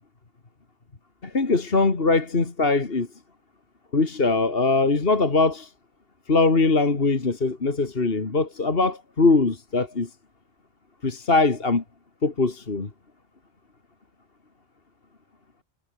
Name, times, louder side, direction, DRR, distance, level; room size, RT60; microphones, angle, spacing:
voice 1, 1.2-3.1 3.9-5.7 6.3-10.1 11.0-11.8 12.2-12.9, left 3 dB, 60° left, 2.5 m, -21 dB
omnidirectional pair, 1.1 m